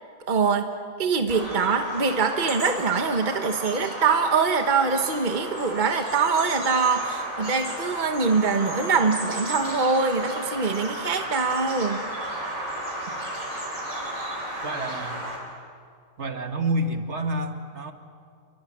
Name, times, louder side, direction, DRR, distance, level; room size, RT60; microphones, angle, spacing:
voice 1, 0.3-0.7 1.0-12.0, right 4 dB, 40° right, 6 dB, 1.4 m, -23 dB
Bird vocalization bird call bird song, 1.3-15.4, right 1 dB, 80° right, 5.2 m, -33 dB
voice 2, 14.6-15.3 16.2-17.9, right 1 dB, 60° right, 6 dB, 1.9 m, -28 dB
28.5 x 23.0 x 7.5 m, 2.2 s
omnidirectional pair, 1.3 m